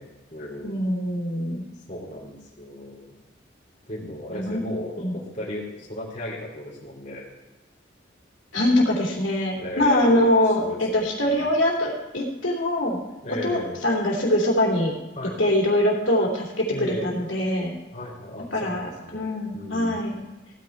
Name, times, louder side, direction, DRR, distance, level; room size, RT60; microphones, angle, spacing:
voice 1, 0.0-0.9 1.9-3.1 3.9-7.3 9.6-11.5 13.2-13.8 15.1-15.4 16.7-17.2 17.9-19.3 19.5-20.0, left 1 dB, 40° left, -4 dB, 2.9 m, -36 dB
voice 2, 0.6-1.6 4.3-4.6 5.0-5.2 8.5-13.0 13.3-14.9 15.4-17.7 18.5-20.2, left 1 dB, 85° left, -2 dB, 2.9 m, -23 dB
15.5 x 9.7 x 4.4 m, 1.1 s
head